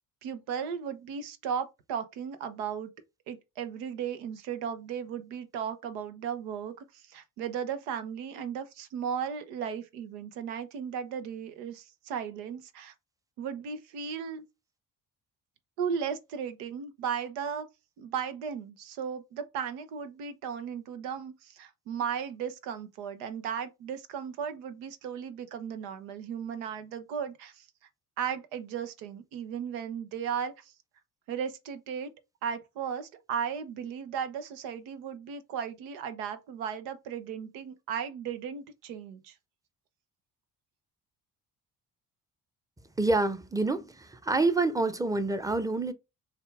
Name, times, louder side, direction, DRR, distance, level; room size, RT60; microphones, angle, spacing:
voice 1, 0.2-2.9 3.3-12.9 13.4-14.4 15.8-17.7 18.0-27.7 28.2-30.7 31.3-32.1 32.4-39.3, right 7 dB, 70° right, 0.8 m, -36 dB
voice 2, 43.0-45.9, right 3 dB, 10° right, 0.7 m, -27 dB
6.5 x 2.4 x 3.3 m
hypercardioid pair, 45°, 46 cm